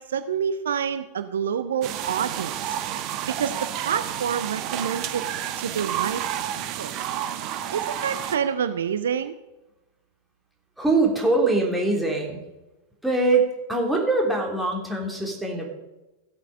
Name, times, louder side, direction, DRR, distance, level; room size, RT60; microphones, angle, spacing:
voice 1, 0.0-2.8 3.3-5.3 5.6-6.2 6.5-6.9 7.7-9.3, right 8 dB, 65° right, 11 dB, 0.6 m, -28 dB
sound 1, 1.8-8.4, right 10 dB, 40° right, 1.2 m, -30 dB
voice 2, 10.8-12.4 13.0-15.7, right 2 dB, 5° right, -2 dB, 3.4 m, -23 dB
15.5 x 8.3 x 5.2 m, 1.0 s
figure-of-eight pair, 90°, 0 cm